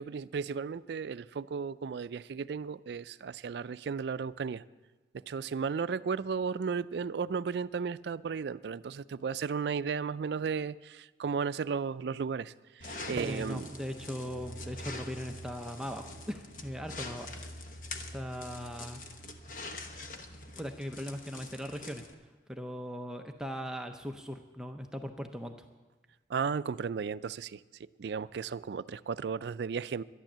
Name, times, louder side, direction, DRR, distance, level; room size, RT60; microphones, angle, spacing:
voice 1, 0.0-4.6 5.1-13.7 26.3-30.0, right 6 dB, 65° right, 0.3 m, -35 dB
sound 1, 12.8-22.1, left 2 dB, 45° left, 1.0 m, -44 dB
voice 2, 13.1-17.3 18.1-19.0 20.6-25.7, equal, 5° right, 0.6 m, -39 dB
sound 2, 13.2-21.2, right 2 dB, 45° right, 0.7 m, -51 dB
12.0 x 11.5 x 7.4 m
head